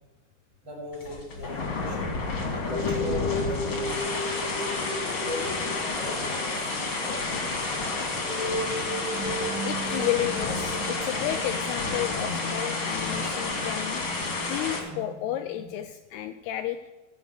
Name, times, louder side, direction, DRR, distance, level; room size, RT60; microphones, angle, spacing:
voice 1, 0.6-2.2 2.5-4.1 5.2-6.7 7.0-7.4 14.9-15.0, left 1 dB, 30° right, -4 dB, 5.0 m, -38 dB
sound 1, 0.9-14.8, left 3 dB, 35° left, 2.3 m, -30 dB
sound 2, 2.7-15.8, left 1 dB, 50° right, 4.7 m, -36 dB
voice 2, 9.6-14.0 14.4-16.8, left 13 dB, 90° left, 8 dB, 2.3 m, -32 dB
15.0 x 8.1 x 6.6 m, 1.2 s
omnidirectional pair, 5.4 m